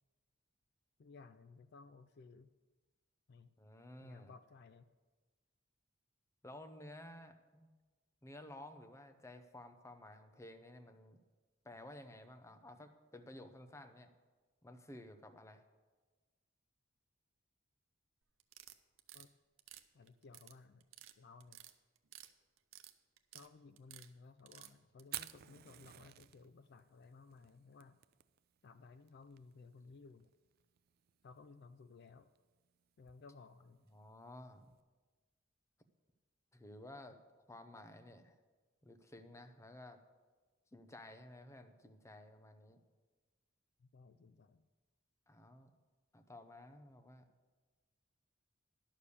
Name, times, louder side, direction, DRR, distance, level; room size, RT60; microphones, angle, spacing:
voice 1, 1.0-2.5 3.3-3.5 4.0-4.9 19.1-19.3 19.9-20.9 21.2-21.6 23.3-28.0 28.6-30.3 31.2-32.3 33.0-33.8 43.8-44.7, left 4 dB, 55° left, 12 dB, 0.4 m, -58 dB
voice 2, 3.6-4.3 6.4-7.7 8.2-11.2 11.6-14.1 14.6-15.6 33.9-34.7 36.5-37.2 37.5-38.3 38.8-40.0 40.7-42.8 45.3-45.7 46.1-47.3, left 1 dB, 15° left, 8 dB, 0.7 m, -54 dB
sound 1, 18.4-19.3 19.6-20.5 20.8-21.1 21.4-22.3 22.6-23.5 23.8-24.1 24.5-25.3, right 13 dB, 90° right, 0.6 m, -55 dB
Fire, 25.0-34.8, right 14 dB, 50° right, 0.4 m, -54 dB
11.5 x 6.8 x 6.9 m, 1.3 s
head